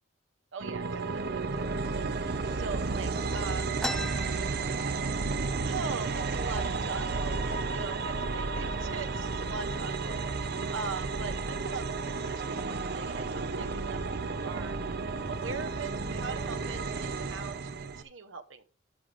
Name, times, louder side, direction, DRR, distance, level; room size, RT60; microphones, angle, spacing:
voice 1, 0.5-1.6 1.9-2.1 2.4-3.8 5.6-10.2 10.7-14.8 15.3-18.6, right 4 dB, 85° right, 8 dB, 1.1 m, -41 dB
sound 1, 0.6-18.0, right 4 dB, 55° right, 0.8 m, -32 dB
sound 2, 3.8-5.4 5.8-5.9 6.1-6.7 7.3-7.5 8.2-8.4 8.8-9.3, left 1 dB, 5° left, 0.3 m, -38 dB
13.0 x 6.7 x 3.4 m, 0.37 s
head